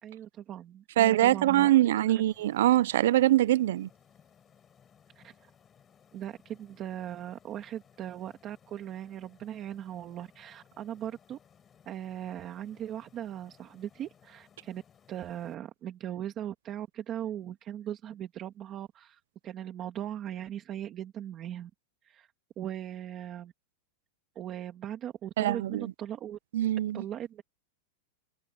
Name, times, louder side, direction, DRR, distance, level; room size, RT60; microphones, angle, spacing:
voice 1, 0.0-1.7 2.0-2.2 5.1-5.5 6.1-11.4 11.8-14.8 15.1-21.7 22.0-22.3 22.6-23.5 24.3-26.4 26.9-27.4, right 11 dB, 20° right, 1.7 m, -39 dB
voice 2, 1.0-3.9 25.4-25.9 26.5-27.0, right 14 dB, 60° right, 0.4 m, -23 dB
sound 1, 2.3-15.5, left 8 dB, 15° left, 7.6 m, -62 dB
supercardioid pair, 175°, 0 cm